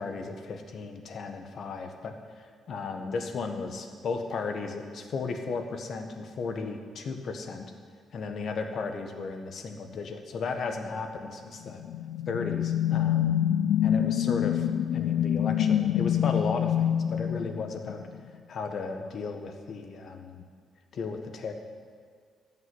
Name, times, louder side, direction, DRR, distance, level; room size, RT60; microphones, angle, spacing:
voice 1, 0.0-7.7 8.1-11.8 12.3-13.4 13.8-14.6 14.9-18.1 18.5-20.4 20.9-21.5, left 4 dB, 60° left, 5 dB, 1.5 m, -35 dB
sound 1, 11.7-18.2, left 10 dB, 85° left, 0.4 m, -26 dB
13.5 x 6.0 x 9.8 m, 2.1 s
cardioid pair, 90°, 0 cm